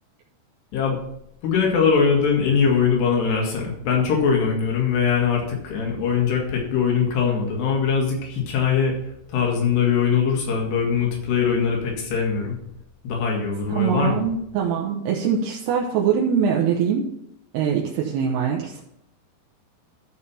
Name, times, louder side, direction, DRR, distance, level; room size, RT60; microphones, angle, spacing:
voice 1, 1.4-8.9 9.3-12.6 13.0-14.2, left 6 dB, 90° left, -1 dB, 4.1 m, -21 dB
voice 2, 13.7-17.1 17.5-18.8, right 7 dB, 80° right, -1 dB, 2.9 m, -23 dB
13.0 x 4.4 x 5.5 m, 0.79 s
omnidirectional pair, 4.6 m